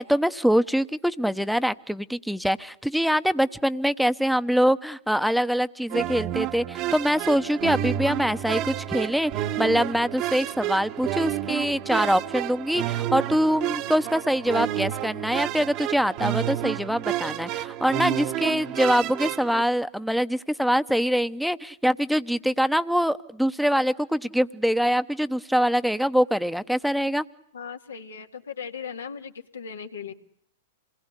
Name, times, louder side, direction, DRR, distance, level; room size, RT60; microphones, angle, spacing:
voice 1, 0.0-27.2, equal, ahead, 12 dB, 1.0 m, -24 dB
sound 1, 5.9-19.6, right 13 dB, 45° right, 1.3 m, -30 dB
voice 2, 27.5-30.1, left 6 dB, 85° left, 5 dB, 2.2 m, -37 dB
27.0 x 21.0 x 8.3 m, 0.69 s
hypercardioid pair, 110°, 0 cm